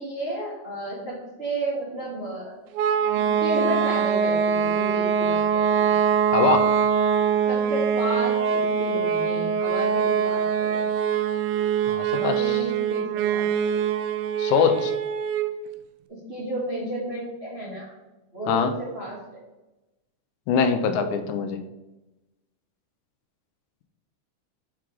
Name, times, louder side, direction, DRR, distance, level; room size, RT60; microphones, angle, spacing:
voice 1, 0.0-2.5 3.4-5.9 7.5-10.9 12.1-13.5 16.1-17.9 18.3-19.2, right 1 dB, 35° right, -6 dB, 1.0 m, -32 dB
sound 1, 2.8-15.6, right 7 dB, 85° right, 2.0 m, -23 dB
voice 2, 6.3-6.7 11.9-12.7 14.4-14.9 18.5-18.7 20.5-21.6, left 6 dB, 90° left, 9 dB, 2.1 m, -23 dB
6.2 x 4.6 x 3.7 m, 1.0 s
omnidirectional pair, 3.5 m